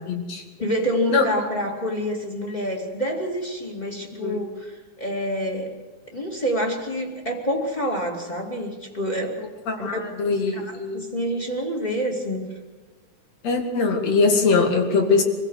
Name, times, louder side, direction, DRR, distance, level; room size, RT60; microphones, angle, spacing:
voice 1, 0.1-0.4 1.1-1.2 4.2-4.4 9.7-11.0 13.4-15.2, left 4 dB, 60° left, 3 dB, 3.2 m, -21 dB
voice 2, 0.6-5.8 6.1-9.4 9.8-12.5, equal, 15° left, -1 dB, 2.3 m, -27 dB
25.0 x 16.0 x 6.5 m, 1.3 s
omnidirectional pair, 3.5 m